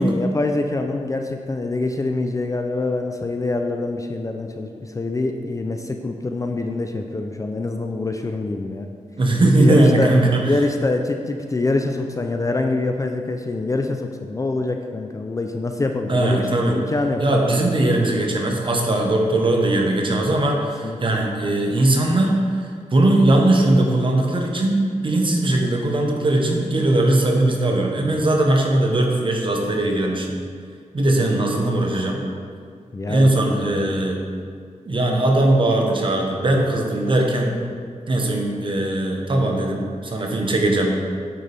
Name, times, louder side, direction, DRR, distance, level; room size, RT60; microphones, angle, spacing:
voice 1, 0.0-8.9 9.6-10.1 10.5-17.5 20.8-21.2 32.9-33.8, left 2 dB, 25° left, 4 dB, 0.4 m, -25 dB
voice 2, 9.2-10.6 16.1-16.8 17.2-30.3 30.9-32.2 33.1-34.2 34.9-37.6 38.1-41.0, right 1 dB, 40° right, 1 dB, 0.9 m, -19 dB
8.8 x 4.0 x 3.4 m, 2.1 s
wide cardioid pair, 110°, 13 cm